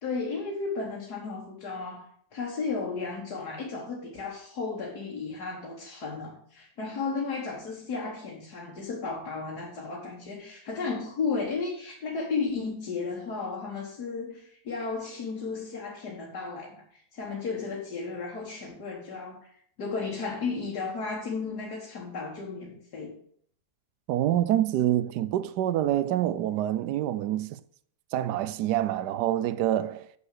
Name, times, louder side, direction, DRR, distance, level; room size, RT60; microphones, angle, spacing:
voice 1, 0.0-19.5 19.8-23.2, left 4 dB, 75° left, 2.1 m, -34 dB
voice 2, 24.1-27.6 28.1-30.1, right 12 dB, 85° right, 1.2 m, -26 dB
6.9 x 6.9 x 6.5 m
omnidirectional pair, 1.7 m